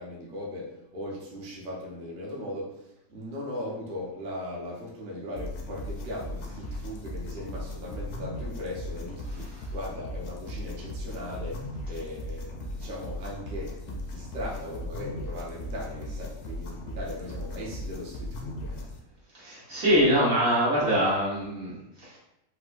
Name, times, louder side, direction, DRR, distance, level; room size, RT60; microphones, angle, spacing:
voice 1, 0.0-18.9, left 1 dB, 45° right, -5 dB, 0.8 m, -38 dB
sound 1, 5.4-19.0, left 1 dB, 65° left, 0.8 m, -37 dB
voice 2, 19.3-22.2, equal, 85° right, -8 dB, 1.7 m, -24 dB
4.4 x 2.1 x 2.4 m, 0.90 s
omnidirectional pair, 1.4 m